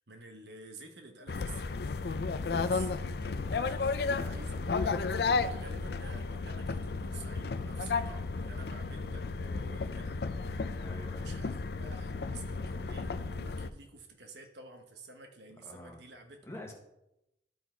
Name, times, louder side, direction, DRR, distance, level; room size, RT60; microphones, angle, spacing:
voice 1, 0.0-10.5 11.2-16.6, right 2 dB, 70° right, 4 dB, 1.1 m, -51 dB
sound 1, 1.3-13.7, left 4 dB, 60° left, 0.4 m, -33 dB
voice 2, 2.5-2.8 10.7-11.3 15.6-16.0 16.4-16.7, left 1 dB, 15° left, 0 dB, 1.3 m, -46 dB
12.0 x 4.7 x 4.5 m, 0.88 s
head